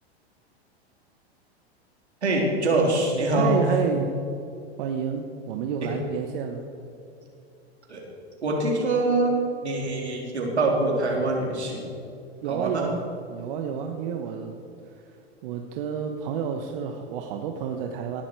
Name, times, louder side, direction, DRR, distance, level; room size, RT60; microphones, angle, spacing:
voice 1, 2.2-3.6 5.8-5.9 7.9-8.0 8.4-9.4 9.6-11.9 12.5-12.9, right 2 dB, 85° right, -1 dB, 3.8 m, -24 dB
voice 2, 3.3-4.1 4.8-6.7 12.4-13.0 13.3-14.5 14.8-15.0 15.4-18.2, right 7 dB, 55° right, 4 dB, 1.4 m, -30 dB
18.5 x 12.0 x 4.8 m, 2.7 s
hypercardioid pair, 100°, 33 cm